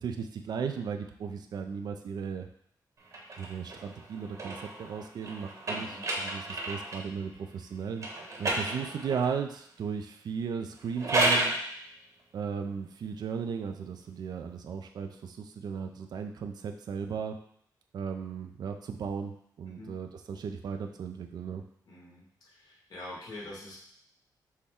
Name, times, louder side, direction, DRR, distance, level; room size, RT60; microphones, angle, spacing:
voice 1, 0.0-2.5 3.4-8.1 8.4-11.5 12.3-17.4 17.9-21.6, right 6 dB, 65° right, 5 dB, 0.4 m, -36 dB
sound 1, 3.1-7.1 8.0-9.3 10.8-11.6, right 1 dB, 45° right, 1.0 m, -32 dB
voice 2, 5.7-6.0 19.7-20.0 21.9-22.2 22.5-23.8, left 1 dB, 60° left, -4 dB, 1.6 m, -45 dB
6.2 x 2.2 x 3.6 m, 0.66 s
cardioid pair, 110°, 7 cm